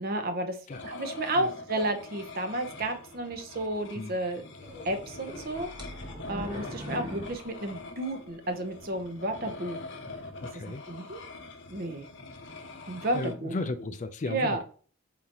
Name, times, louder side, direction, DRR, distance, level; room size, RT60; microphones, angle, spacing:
voice 1, 0.0-4.4 4.8-5.7 6.0-9.8 10.7-11.2 11.7-12.1 12.9-13.5 14.3-14.6, right 1 dB, 45° right, 0.7 m, -32 dB
sound 1, 0.7-13.3, left 3 dB, 55° left, 0.7 m, -44 dB
sound 2, 4.6-8.4 8.8-8.9 9.5-9.7, equal, 20° right, 1.0 m, -42 dB
voice 2, 10.4-10.9 13.1-14.6, left 2 dB, 35° left, 0.4 m, -34 dB
4.5 x 3.9 x 2.9 m
head